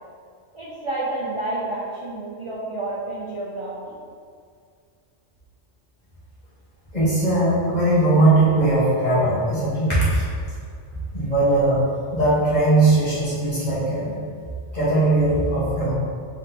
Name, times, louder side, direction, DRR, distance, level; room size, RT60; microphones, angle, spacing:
voice 1, 0.5-3.9, right 2 dB, 40° right, -7 dB, 0.5 m, -29 dB
voice 2, 6.9-10.2 11.1-11.8 12.1-14.1 14.7-15.9, right 2 dB, 35° left, -10 dB, 1.5 m, -19 dB
3.9 x 3.5 x 2.9 m, 2.2 s
omnidirectional pair, 1.2 m